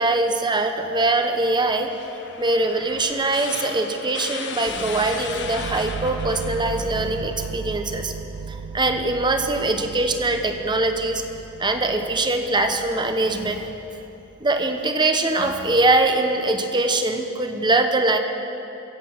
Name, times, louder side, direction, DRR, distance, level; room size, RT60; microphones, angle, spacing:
voice 1, 0.0-1.9 2.4-8.1 8.5-11.2 11.6-13.7 14.4-18.2, right 2 dB, 20° right, 6 dB, 1.0 m, -22 dB
sound 1, 1.1-7.6, left 6 dB, 60° left, 1.1 m, -37 dB
sound 2, 4.7-14.5, right 5 dB, 75° right, 0.6 m, -36 dB
23.0 x 8.3 x 5.8 m, 2.9 s
head